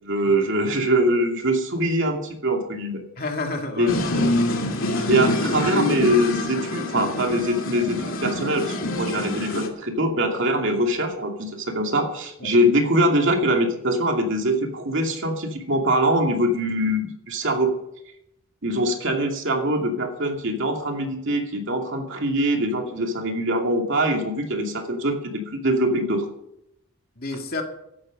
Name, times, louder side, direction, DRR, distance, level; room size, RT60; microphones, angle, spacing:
voice 1, 0.0-3.0 3.8-4.3 5.1-17.7 18.6-26.3, right 1 dB, 55° right, 2 dB, 2.6 m, -23 dB
voice 2, 3.2-4.3 12.4-12.5 27.2-27.6, left 3 dB, 40° left, 3 dB, 2.3 m, -30 dB
sound 1, 3.9-9.7, left 1 dB, 60° left, 2.7 m, -25 dB
15.0 x 12.0 x 5.3 m, 0.80 s
head